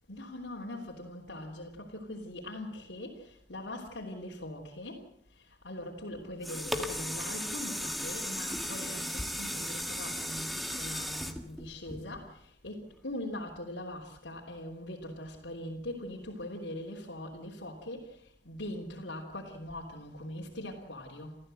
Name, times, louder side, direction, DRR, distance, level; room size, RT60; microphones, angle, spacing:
voice 1, 0.1-5.0 5.6-12.3 12.6-18.1 18.4-21.4, left 1 dB, 85° left, 3.4 m, -41 dB
sound 1, 6.1-12.5 13.0-13.1, equal, ahead, 1.7 m, -36 dB
28.5 x 14.0 x 7.8 m
head